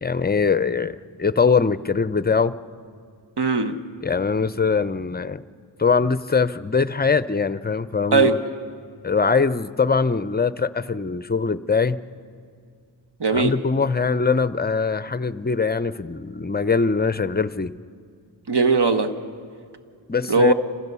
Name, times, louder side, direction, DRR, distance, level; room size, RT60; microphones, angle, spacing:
voice 1, 0.0-2.5 4.0-5.4 5.8-8.4 9.0-12.0 13.3-17.7 20.1-20.5, left 5 dB, 20° left, 15 dB, 0.5 m, -22 dB
voice 2, 3.4-3.7 8.1-8.4 13.2-13.5 18.5-19.1 20.3-20.5, right 4 dB, 55° right, 8 dB, 1.3 m, -19 dB
27.0 x 15.5 x 6.9 m, 2.2 s
wide cardioid pair, 50°, 47 cm